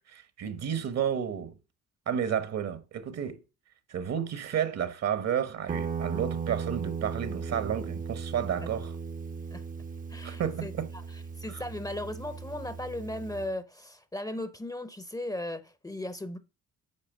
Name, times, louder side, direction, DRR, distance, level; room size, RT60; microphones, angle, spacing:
voice 1, 0.1-1.6 2.1-3.4 3.9-8.9 10.2-10.9, right 8 dB, 60° right, 1.0 m, -31 dB
Guitar, 5.7-13.5, right 6 dB, 30° right, 0.5 m, -37 dB
voice 2, 10.1-10.7 11.1-16.4, left 1 dB, 10° left, 0.6 m, -37 dB
9.2 x 3.2 x 6.0 m
cardioid pair, 90°, 30 cm